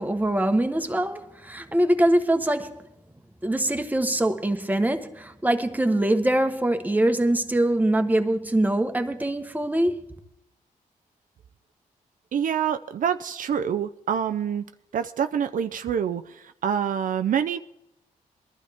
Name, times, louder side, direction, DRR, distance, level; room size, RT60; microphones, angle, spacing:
voice 1, 0.0-2.9 3.4-10.1, right 1 dB, 10° right, 1.2 m, -23 dB
voice 2, 12.3-14.6 14.9-17.6, right 8 dB, 70° right, 0.5 m, -26 dB
21.0 x 12.0 x 3.5 m
cardioid pair, 65°, 14 cm